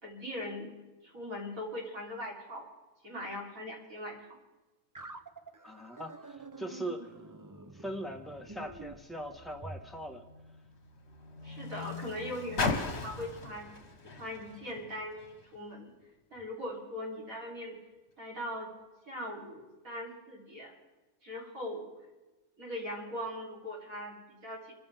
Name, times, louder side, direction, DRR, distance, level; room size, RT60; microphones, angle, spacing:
voice 1, 0.0-0.7 1.0-2.7 3.0-4.2 11.4-13.7 14.0-15.9 16.3-17.8 18.2-18.7 19.1-20.8 21.2-21.9 22.6-24.7, left 1 dB, 75° right, -3 dB, 4.2 m, -40 dB
sound 1, 4.9-9.9, right 3 dB, 25° right, 0.4 m, -48 dB
voice 2, 5.6-7.1 7.7-10.2, right 1 dB, ahead, 1 dB, 1.4 m, -40 dB
Car, 9.0-15.6 16.4-16.5, left 4 dB, 50° left, 1.8 m, -39 dB
26.5 x 14.5 x 3.6 m, 1.1 s
omnidirectional pair, 1.4 m